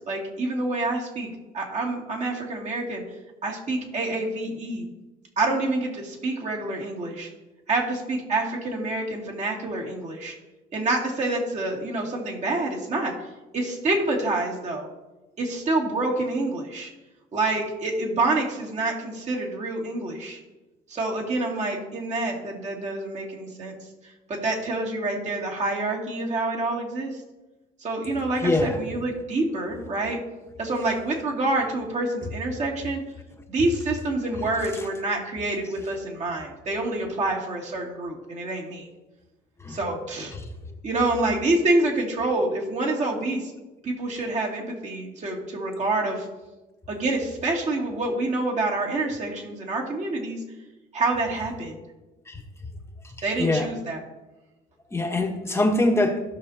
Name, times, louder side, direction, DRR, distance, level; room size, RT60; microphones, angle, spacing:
voice 1, 0.1-1.3 1.5-3.0 3.4-4.8 5.4-7.3 7.7-10.3 10.7-13.1 13.5-14.9 15.4-16.9 17.3-20.4 20.9-23.7 24.3-27.2 27.8-30.2 30.6-33.0 33.5-38.9 39.7-40.3 40.8-43.5 43.8-46.3 46.9-50.4 50.9-51.8 53.2-54.0, right 2 dB, 45° right, -2 dB, 2.5 m, -27 dB
voice 2, 28.4-28.8 39.6-39.8 52.3-52.4 53.4-53.7 54.9-56.2, left 2 dB, 15° left, 2 dB, 1.2 m, -23 dB
16.5 x 6.2 x 2.8 m, 1.1 s
cardioid pair, 110°, 17 cm